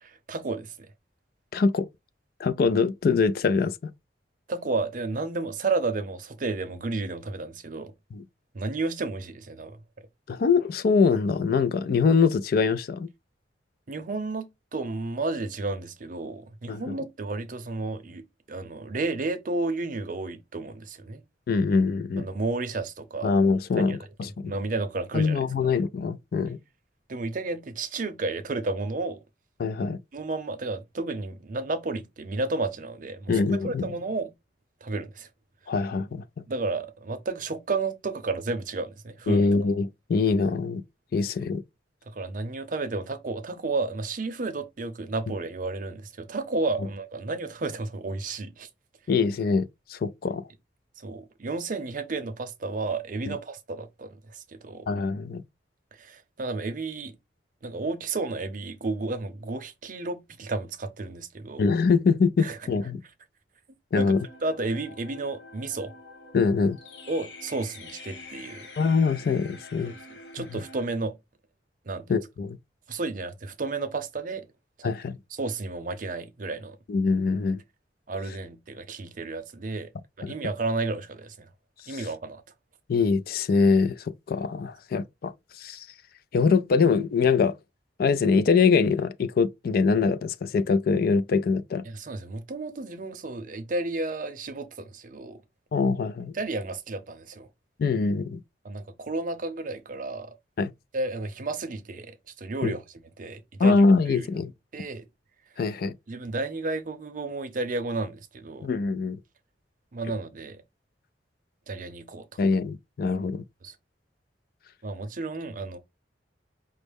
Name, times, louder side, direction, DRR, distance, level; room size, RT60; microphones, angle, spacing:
voice 1, 0.0-0.9 4.5-7.9 8.5-9.8 13.9-21.2 22.2-23.3 23.8-24.0 24.4-25.7 27.1-29.2 30.1-34.3 34.8-35.3 36.5-39.5 42.1-48.7 51.0-54.9 56.0-57.1 57.6-61.6 62.4-62.6 63.9-64.1 64.4-65.9 67.1-68.7 69.8-69.9 70.3-71.1 71.9-72.1 72.9-74.5 74.8-74.9 75.4-76.8 78.1-79.9 80.2-81.5 81.9-82.4 91.9-95.4 96.3-97.5 98.6-100.3 100.9-102.8 103.2-103.8 104.1-104.3 104.7-105.0 106.1-108.7 109.9-110.6 111.7-112.4 113.6-113.7 114.8-115.8, right 3 dB, 50° right, 0.6 m, -32 dB
voice 2, 1.5-1.9 2.4-3.7 8.1-8.2 10.3-13.1 16.7-16.9 21.5-22.3 23.2-24.5 25.1-26.6 29.6-30.0 33.3-33.8 35.7-36.2 39.3-40.8 41.1-41.6 49.1-50.5 53.3-53.4 54.9-55.4 61.6-63.0 63.9-64.3 66.3-66.8 68.8-69.9 70.5-70.6 72.1-72.6 74.8-75.2 76.9-77.6 80.2-80.3 81.9-82.1 82.9-85.9 86.3-87.5 88.0-91.8 95.7-96.3 97.8-98.4 100.6-100.7 102.6-102.7 103.6-104.5 105.6-105.9 108.6-109.2 112.4-113.4, left 4 dB, 55° left, 0.3 m, -23 dB
sound 1, 64.0-70.9, left 2 dB, 80° left, 1.4 m, -46 dB
5.2 x 2.1 x 3.4 m
head